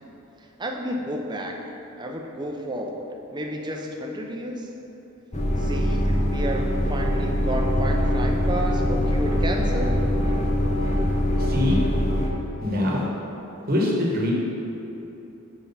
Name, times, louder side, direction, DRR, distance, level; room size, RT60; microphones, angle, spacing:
voice 1, 0.6-1.6 2.0-3.1 3.3-4.7 5.6-10.1, right 1 dB, 20° right, 2 dB, 0.5 m, -31 dB
sound 1, 5.3-12.3, equal, 30° left, 0.7 m, -23 dB
voice 2, 11.4-11.8 12.6-13.0 13.7-14.3, left 1 dB, 40° right, -2 dB, 1.1 m, -23 dB
5.9 x 4.7 x 5.5 m, 3.0 s
head